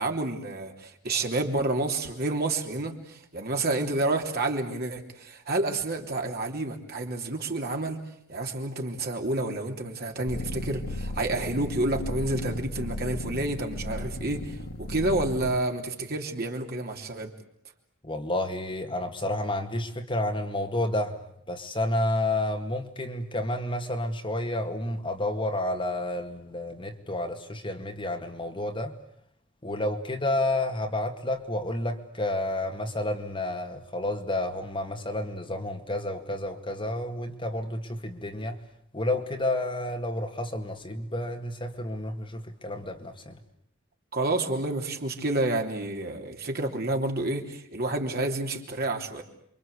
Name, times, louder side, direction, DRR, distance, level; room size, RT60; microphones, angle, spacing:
voice 1, 0.0-8.0 8.3-17.3 44.1-49.2, right 2 dB, 50° right, 3.3 m, -29 dB
sound 1, 10.3-15.6, left 1 dB, 70° left, 1.9 m, -35 dB
voice 2, 18.0-21.2 21.5-28.9 29.6-38.6 38.9-43.4, left 1 dB, 25° left, 2.1 m, -30 dB
28.5 x 24.5 x 8.2 m
head